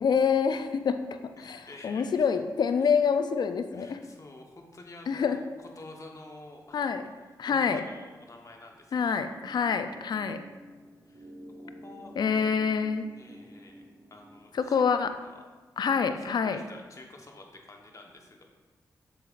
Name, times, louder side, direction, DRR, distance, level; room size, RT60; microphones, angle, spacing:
voice 1, 0.0-4.0 5.1-5.4 6.7-7.0 7.4-7.8 8.9-10.4 12.2-13.1 14.5-15.1 15.8-16.6, left 6 dB, 65° left, 9 dB, 0.5 m, -26 dB
voice 2, 1.4-2.3 2.8-3.0 3.7-5.4 5.8-6.8 7.4-9.2 11.1-11.3 11.6-12.1 13.2-14.9 15.2-15.4 16.0-18.4, left 2 dB, 45° left, 2 dB, 1.2 m, -49 dB
sound 1, 9.4-14.4, equal, 70° right, 1.3 m, -49 dB
7.1 x 7.0 x 2.6 m, 1.3 s
supercardioid pair, 45°, 8 cm